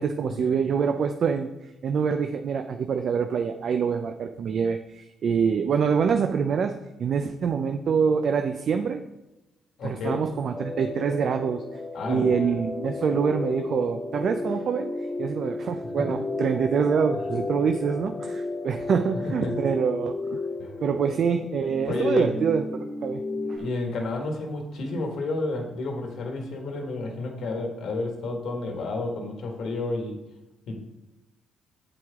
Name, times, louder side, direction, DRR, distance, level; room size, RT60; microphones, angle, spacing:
voice 1, 0.0-1.5 1.8-6.7 7.0-9.0 9.8-11.6 12.1-14.9 15.2-20.4 20.8-22.6 23.0-23.2 23.5-23.6, right 6 dB, 60° right, 6 dB, 0.5 m, -25 dB
voice 2, 9.8-10.2 11.9-12.3 16.0-16.1 19.4-19.6 20.6-20.7 21.9-22.3 23.6-30.2 30.7-30.8, left 2 dB, 70° left, 2 dB, 1.8 m, -30 dB
sound 1, 10.5-23.6, left 3 dB, 20° left, 0.7 m, -33 dB
8.0 x 7.7 x 3.6 m, 1.0 s
cardioid pair, 90°, 0 cm